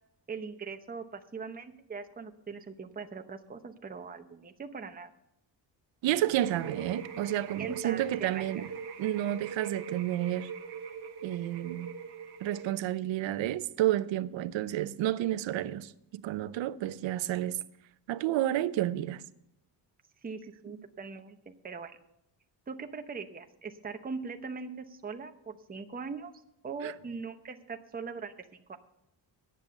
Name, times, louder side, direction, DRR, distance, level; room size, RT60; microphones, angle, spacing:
voice 1, 0.3-5.1 7.4-8.4 20.2-22.0 22.7-26.3 26.6-28.8, right 5 dB, 20° right, 0.8 m, -41 dB
voice 2, 6.0-8.7 9.0-10.5 11.2-11.9 12.4-17.6 18.1-19.2 26.8-26.9, right 13 dB, 80° right, 0.7 m, -30 dB
sound 1, 6.4-12.7, right 6 dB, 60° right, 1.2 m, -42 dB
10.5 x 7.8 x 6.7 m
cardioid pair, 120°, 44 cm